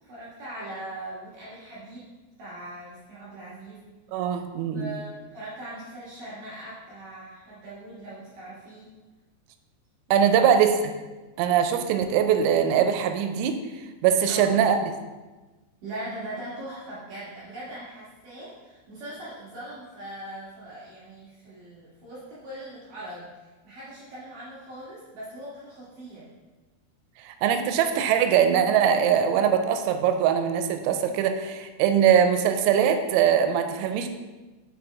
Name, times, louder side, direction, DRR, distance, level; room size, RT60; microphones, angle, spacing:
voice 1, 0.0-2.1 2.4-3.8 4.1-4.2 4.7-8.9 14.3-14.5 15.8-23.3 23.6-26.2, right 1 dB, 70° right, -9 dB, 2.0 m, -40 dB
voice 2, 4.1-4.9 10.1-10.9 11.4-13.6 14.0-14.8 27.2-34.1, right 8 dB, 85° right, 7 dB, 3.2 m, -22 dB
6.9 x 5.2 x 3.4 m, 1.2 s
omnidirectional pair, 6.0 m